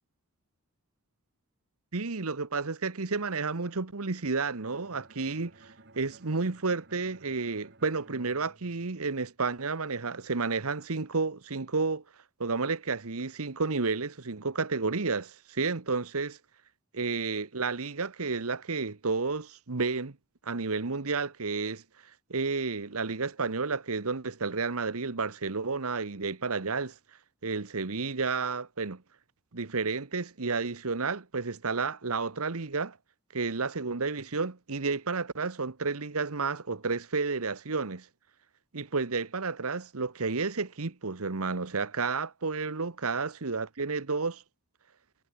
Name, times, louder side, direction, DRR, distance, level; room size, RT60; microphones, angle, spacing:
voice 1, 1.9-5.5 6.0-12.0 12.4-16.4 16.9-20.2 20.4-21.8 22.3-26.9 27.4-29.0 29.5-33.0 33.3-38.1 38.7-44.4, right 4 dB, 70° right, 1.2 m, -31 dB
Bowed string instrument, 4.6-9.5, right 2 dB, 50° right, 5.5 m, -56 dB
head